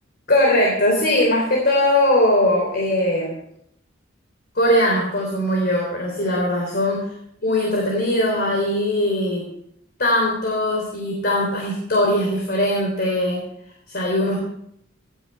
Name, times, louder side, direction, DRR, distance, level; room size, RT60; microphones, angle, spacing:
voice 1, 0.3-3.3 4.6-7.1 7.4-9.5 10.0-13.4 13.9-14.4, left 1 dB, 55° left, -1 dB, 3.6 m, -20 dB
17.5 x 10.0 x 4.5 m, 0.72 s
head